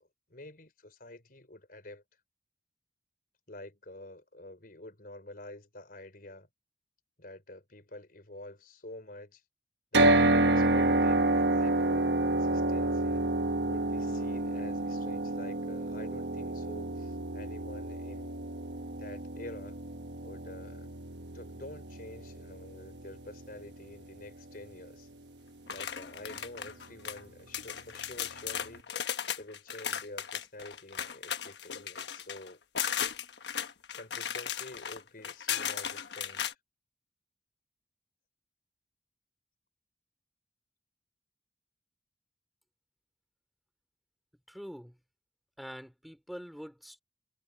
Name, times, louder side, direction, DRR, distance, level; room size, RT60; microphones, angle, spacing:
voice 1, 0.0-2.0 3.5-6.5 7.2-9.4 9.9-13.2 13.7-18.6 19.0-19.8 20.2-20.9 21.3-25.1 25.7-29.1 29.4-32.6 33.9-36.6, left 2 dB, 55° left, 4.7 m, -48 dB
sound 1, 9.9-24.1, right 2 dB, 80° right, 1.2 m, -29 dB
sound 2, 25.7-27.2 27.5-36.5, left 8 dB, 75° left, 1.3 m, -36 dB
voice 2, 44.5-45.0 45.6-47.0, equal, ahead, 4.5 m, -44 dB
head